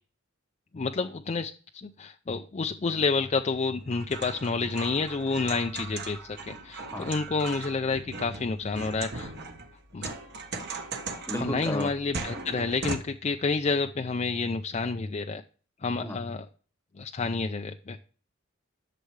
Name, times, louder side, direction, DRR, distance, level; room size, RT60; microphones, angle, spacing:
voice 1, 0.7-1.5 1.8-9.3 9.9-10.1 11.4-15.4 15.8-16.4 17.0-18.0, left 4 dB, 30° left, 6 dB, 0.4 m, -29 dB
sound 1, 3.8-13.0, right 3 dB, 50° right, 1.3 m, -39 dB
voice 2, 11.3-11.9 16.0-16.2, left 1 dB, 10° left, 8 dB, 1.0 m, -33 dB
11.5 x 6.7 x 3.2 m, 0.39 s
head